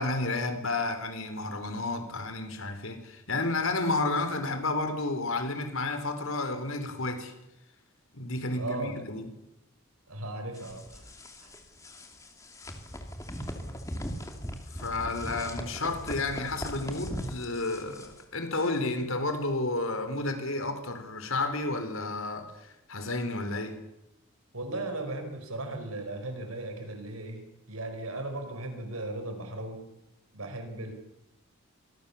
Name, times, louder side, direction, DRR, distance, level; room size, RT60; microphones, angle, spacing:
voice 1, 0.0-7.3 8.1-9.3 14.8-22.5 22.9-23.8, left 2 dB, 70° left, 4.1 m, -31 dB
voice 2, 8.5-8.9 10.1-11.0 11.4-11.5 24.5-29.9 30.3-30.9, right 2 dB, 80° right, 5.0 m, -37 dB
sound 1, 10.5-18.2, equal, 15° left, 2.6 m, -39 dB
26.0 x 21.0 x 7.2 m
head